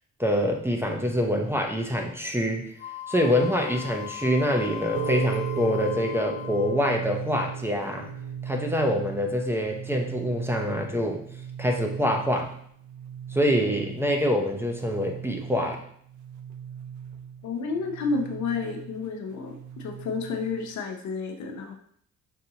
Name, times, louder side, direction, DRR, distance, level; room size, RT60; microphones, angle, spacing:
voice 1, 0.2-2.7 3.1-8.1 8.4-11.2 11.6-12.5 13.3-15.8, equal, 10° right, 2 dB, 0.6 m, -25 dB
Wind instrument woodwind instrument, 2.8-6.9, left 11 dB, 25° left, 0.9 m, -39 dB
sound 1, 4.9-20.8, right 8 dB, 75° right, 0.5 m, -37 dB
voice 2, 17.4-21.7, left 4 dB, 70° left, 4 dB, 0.7 m, -31 dB
5.5 x 2.7 x 2.7 m, 0.63 s
cardioid pair, 90°, 30 cm